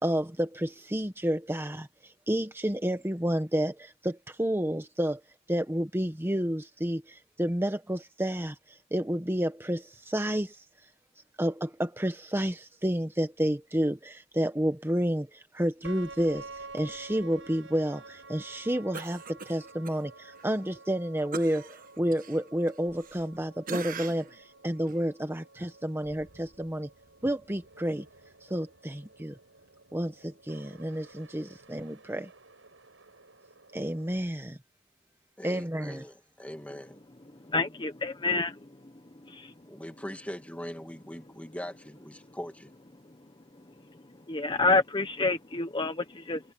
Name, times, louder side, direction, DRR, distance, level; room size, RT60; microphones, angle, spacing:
voice 1, 0.0-5.2 5.5-10.6 11.4-26.9 27.2-28.1 28.4-29.3 29.9-32.3 33.7-34.6 35.4-36.0, equal, 15° right, 1.3 m, -30 dB
sound 1, 15.8-34.2, right 3 dB, 85° right, 7.4 m, -51 dB
Cough, 18.9-20.0 20.4-20.5 21.3-23.4 23.7-24.4 24.9-25.0, right 4 dB, 50° right, 1.5 m, -41 dB
voice 2, 35.4-37.0 39.6-42.7, equal, 10° left, 2.4 m, -41 dB
voice 3, 37.5-38.5 39.3-39.5 44.3-46.5, left 3 dB, 25° left, 1.1 m, -28 dB
head